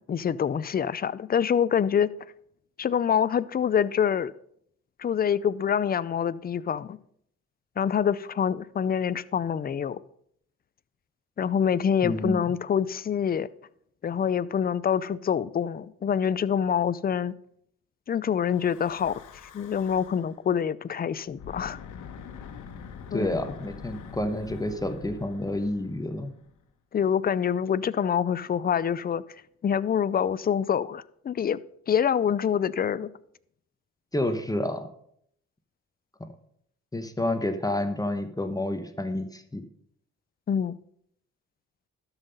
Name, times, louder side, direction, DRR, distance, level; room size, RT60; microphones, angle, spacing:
voice 1, 0.0-2.1 2.8-4.3 5.0-7.0 7.8-10.0 11.4-13.5 14.0-17.3 18.1-19.2 19.5-21.8 23.1-23.4 26.9-29.2 29.6-31.6 31.9-33.1 40.5-40.7, left 8 dB, 30° left, 0.5 m, -26 dB
voice 2, 12.0-12.4 23.1-26.3 34.1-34.9 36.9-39.6, left 1 dB, 10° left, 1.0 m, -29 dB
Breathing / Wind, 18.4-20.4 21.3-26.6, left 6 dB, 80° left, 1.3 m, -45 dB
12.5 x 5.7 x 5.3 m
cardioid pair, 90°, 30 cm